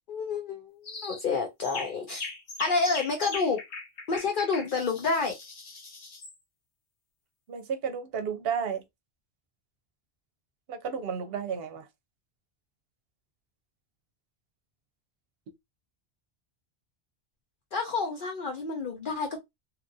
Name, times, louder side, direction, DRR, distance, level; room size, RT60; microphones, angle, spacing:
voice 1, 0.1-2.3 2.6-3.6 4.1-5.4 17.7-19.4, left 4 dB, 55° left, 0.7 m, -29 dB
sound 1, 0.8-1.2 1.6-6.3, left 4 dB, 80° left, 1.2 m, -40 dB
voice 2, 7.5-8.8 10.7-11.9, right 7 dB, 65° right, 0.8 m, -32 dB
2.8 x 2.4 x 2.6 m
omnidirectional pair, 1.1 m